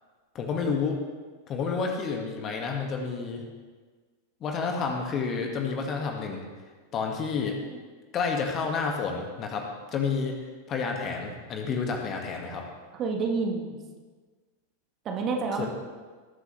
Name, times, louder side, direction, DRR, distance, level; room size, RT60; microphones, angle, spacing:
voice 1, 0.3-1.0 1.5-3.5 4.4-6.4 6.9-7.6 8.1-10.4 10.7-12.6 15.5-15.7, left 5 dB, 30° left, 2 dB, 1.9 m, -30 dB
voice 2, 12.9-13.8 15.0-15.7, right 4 dB, 30° right, 2 dB, 1.5 m, -28 dB
19.0 x 8.0 x 3.4 m, 1.4 s
figure-of-eight pair, 90°, 0 cm